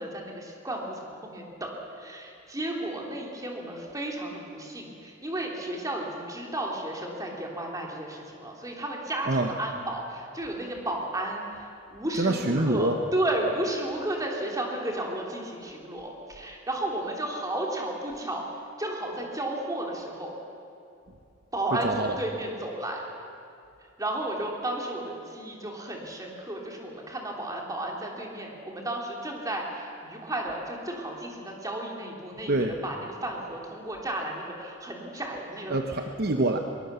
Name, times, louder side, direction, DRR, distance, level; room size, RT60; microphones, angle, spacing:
voice 1, 0.0-1.7 2.0-18.5 18.8-20.3 21.5-23.0 24.0-35.8, right 1 dB, 20° right, 0 dB, 3.3 m, -33 dB
voice 2, 9.2-9.6 12.1-13.0 21.7-22.2 32.5-32.8 35.7-36.6, right 2 dB, 55° right, 5 dB, 1.1 m, -26 dB
23.0 x 21.0 x 6.9 m, 2.6 s
head